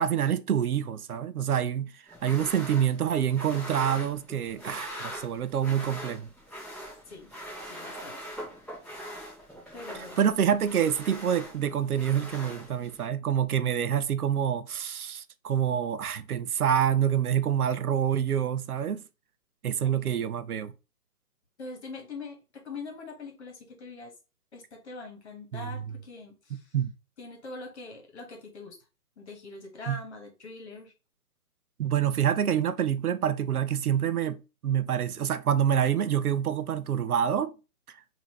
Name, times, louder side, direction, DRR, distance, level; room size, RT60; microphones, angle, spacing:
voice 1, 0.0-1.9 2.2-6.3 10.2-19.0 19.6-20.7 25.5-25.8 26.7-26.9 29.9-30.0 31.8-37.5, right 9 dB, 70° right, 0.6 m, -27 dB
sound 1, 2.1-13.1, equal, ahead, 1.1 m, -42 dB
voice 2, 7.6-8.3 8.6-8.7 9.7-10.3 19.8-20.3 21.6-24.1 24.5-26.7 27.2-28.8 29.2-30.9, left 3 dB, 45° left, 1.6 m, -43 dB
5.3 x 2.8 x 3.1 m
hypercardioid pair, 155°, 46 cm